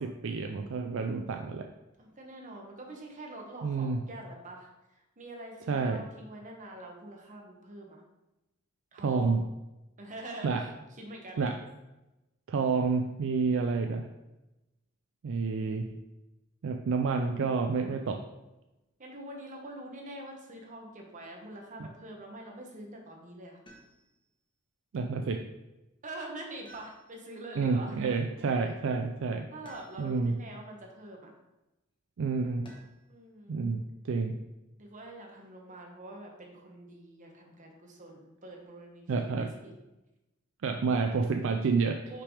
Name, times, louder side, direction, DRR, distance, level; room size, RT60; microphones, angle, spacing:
voice 1, 0.0-1.7 3.6-4.0 5.7-6.0 9.0-9.4 10.4-10.7 11.4-11.6 12.5-14.1 15.2-16.0 16.6-18.2 24.9-25.4 27.6-29.5 30.0-30.4 32.2-32.7 33.5-34.4 39.1-39.5 40.6-42.1, right 4 dB, 65° right, 5 dB, 0.4 m, -29 dB
voice 2, 2.0-8.0 8.9-9.4 10.0-10.7 11.0-11.6 13.2-13.7 17.9-18.2 19.0-23.6 26.0-28.7 29.5-31.3 33.1-33.6 34.8-39.7 42.1-42.2, right 1 dB, 35° right, 1 dB, 1.1 m, -45 dB
sound 1, 23.7-24.3 26.6-27.4 29.6-30.4 32.6-33.2 34.9-35.5, right 1 dB, 25° left, 1.0 m, -55 dB
5.7 x 3.4 x 4.9 m, 0.99 s
head